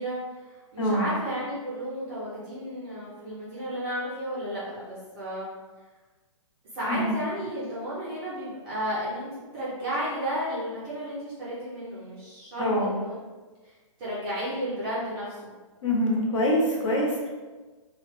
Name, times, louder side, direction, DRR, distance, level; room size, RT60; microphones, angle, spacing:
voice 1, 0.0-5.5 6.7-13.2 13.6-13.7 14.0-15.5, equal, 10° right, -9 dB, 0.4 m, -33 dB
voice 2, 12.6-12.9 15.8-17.3, equal, 65° left, -2 dB, 1.0 m, -24 dB
3.1 x 2.2 x 3.1 m, 1.3 s
hypercardioid pair, 170°, 17 cm